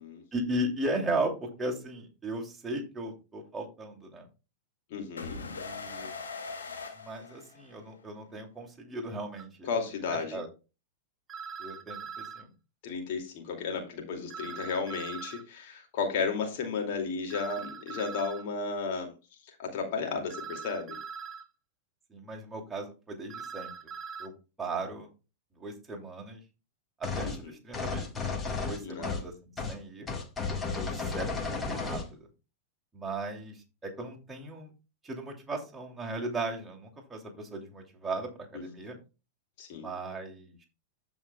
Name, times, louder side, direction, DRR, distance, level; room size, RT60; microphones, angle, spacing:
voice 1, 0.3-4.2 5.0-6.1 6.9-9.7 10.1-10.5 11.6-12.5 20.0-20.2 22.1-23.7 24.2-24.3 24.6-25.1 25.6-26.4 27.0-28.3 28.6-29.3 29.7-30.1 30.7-32.3 32.9-34.7 35.0-39.0 39.7-40.6, right 2 dB, 10° right, 2.7 m, -37 dB
voice 2, 4.9-5.4 9.6-10.4 12.8-19.1 19.6-21.0 27.2-27.3 28.8-29.2 38.5-38.7 39.6-39.9, left 5 dB, 50° left, 2.4 m, -33 dB
sound 1, 5.2-8.0, left 4 dB, 75° left, 2.5 m, -41 dB
sound 2, 9.4-9.5 11.3-12.4 14.3-15.4 17.3-18.4 20.3-21.4 23.3-24.3, right 6 dB, 25° right, 1.0 m, -41 dB
sound 3, 27.0-27.4 27.7-29.3 29.6-29.8 30.1-32.1, left 4 dB, 20° left, 1.6 m, -33 dB
14.5 x 5.6 x 2.3 m
figure-of-eight pair, 95°, 0 cm